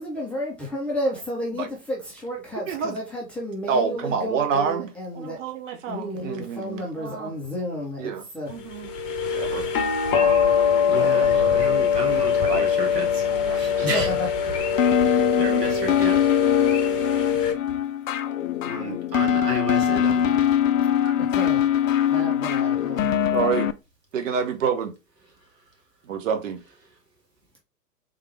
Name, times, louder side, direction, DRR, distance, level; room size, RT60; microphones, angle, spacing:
voice 1, 0.0-5.4 5.9-8.5 13.9-14.3 21.2-21.6 22.1-23.1, equal, 5° left, 0.6 m, -31 dB
voice 2, 2.7-3.0 3.7-4.9 5.1-7.3 8.0-8.2 8.5-8.9 9.3-9.7 10.9-11.6 12.5-12.7 13.5-13.9 20.8-21.1 23.3-23.7 24.1-24.9 26.1-26.6, right 6 dB, 50° right, 1.0 m, -28 dB
sound 1, 8.7-17.5, left 7 dB, 35° left, 1.0 m, -22 dB
voice 3, 10.9-13.2 13.5-14.1 15.0-16.2 18.6-20.5, right 1 dB, 85° right, 1.8 m, -32 dB
sound 2, 14.8-23.7, left 9 dB, 55° left, 0.5 m, -22 dB
3.7 x 3.3 x 3.2 m
figure-of-eight pair, 110°, 48 cm